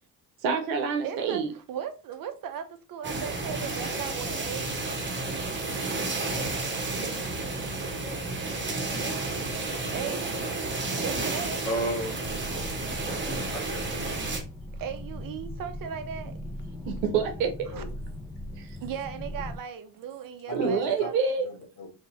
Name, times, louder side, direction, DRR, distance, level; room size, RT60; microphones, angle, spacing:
voice 1, 0.4-1.5 13.3-13.5 16.9-17.5 18.6-18.8 20.5-21.5, right 5 dB, 75° right, 0.9 m, -27 dB
voice 2, 1.0-4.8 9.9-10.3 11.0-11.9 14.7-16.4 17.7-17.8 18.8-21.4, right 8 dB, 45° right, 0.7 m, -37 dB
sound 1, 3.0-14.4, right 3 dB, 20° right, 1.0 m, -31 dB
voice 3, 11.7-12.2 13.5-14.1 17.7-17.9 20.5-21.1 21.4-21.9, equal, 80° left, 1.3 m, -34 dB
sound 2, 12.2-19.6, left 1 dB, 5° left, 0.4 m, -39 dB
3.2 x 2.7 x 3.0 m
hypercardioid pair, 60°, 49 cm